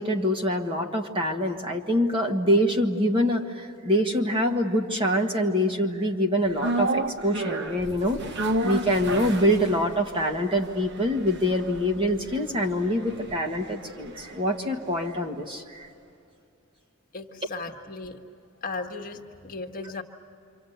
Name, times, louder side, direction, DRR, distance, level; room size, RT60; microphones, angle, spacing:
voice 1, 0.0-8.2 8.5-15.9, equal, 25° right, 2 dB, 1.6 m, -25 dB
sound 1, 6.6-14.9 15.2-15.3, right 1 dB, 55° right, 1.1 m, -32 dB
voice 2, 17.1-18.2 18.6-20.0, left 3 dB, 40° left, 3 dB, 1.5 m, -36 dB
27.5 x 25.5 x 8.0 m, 2.6 s
head